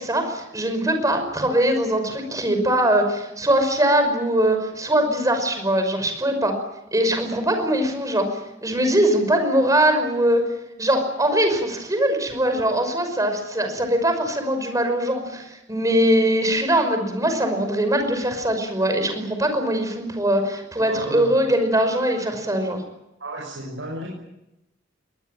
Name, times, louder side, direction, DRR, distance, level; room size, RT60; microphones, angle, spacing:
voice 1, 0.0-6.6 6.9-10.5 10.8-22.8, right 1 dB, 20° right, 6 dB, 5.5 m, -21 dB
voice 2, 20.9-21.3 23.2-24.1, right 1 dB, 85° right, -2 dB, 6.1 m, -32 dB
22.5 x 19.5 x 9.1 m, 0.90 s
head